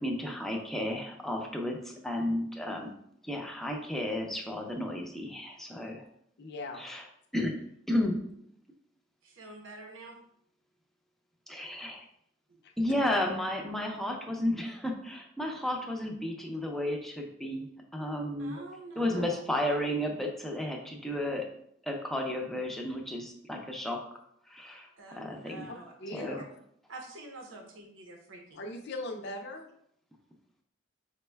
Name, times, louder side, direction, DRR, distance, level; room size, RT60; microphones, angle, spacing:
voice 1, 0.0-2.9 3.2-6.0 6.8-7.0 7.3-7.5 7.9-8.3 11.5-12.0 12.8-17.7 17.9-18.6 19.0-21.5 21.9-24.1 24.5-25.7 26.1-26.4, left 1 dB, ahead, 1 dB, 0.5 m, -33 dB
voice 2, 6.4-6.8 12.6-12.7 18.5-18.6 19.1-19.2 25.7-26.5 28.5-29.7, left 2 dB, 60° left, 2 dB, 0.5 m, -40 dB
voice 3, 9.2-10.2 18.4-19.4 25.0-26.2 26.9-28.6, right 2 dB, 75° right, 2 dB, 0.7 m, -47 dB
5.1 x 2.2 x 3.3 m, 0.70 s
head